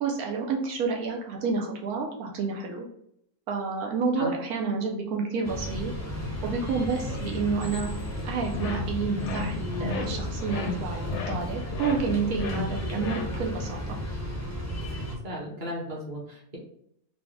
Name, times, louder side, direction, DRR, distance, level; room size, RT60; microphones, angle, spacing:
voice 1, 0.0-2.9 3.5-5.9 6.4-7.9 8.2-13.8, right 5 dB, 80° right, 0 dB, 1.2 m, -29 dB
sound 1, 5.4-15.1, left 1 dB, 25° left, 0.4 m, -34 dB
sound 2, 8.5-13.7, left 4 dB, 65° left, 0.7 m, -34 dB
voice 2, 15.2-16.6, equal, 35° right, -4 dB, 1.2 m, -35 dB
4.0 x 2.3 x 3.5 m, 0.73 s
omnidirectional pair, 1.6 m